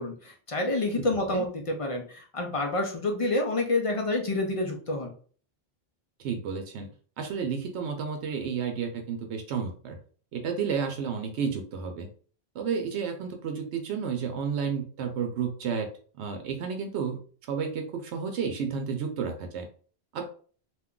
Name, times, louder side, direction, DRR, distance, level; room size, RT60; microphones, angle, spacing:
voice 1, 0.0-5.1, left 2 dB, 45° left, 2 dB, 0.4 m, -28 dB
voice 2, 6.2-6.9 7.2-10.0 10.3-12.1 12.5-15.9 16.2-17.2 17.5-19.7 20.1-20.3, right 6 dB, 85° right, 5 dB, 0.9 m, -31 dB
2.5 x 2.2 x 3.6 m, 0.43 s
omnidirectional pair, 1.1 m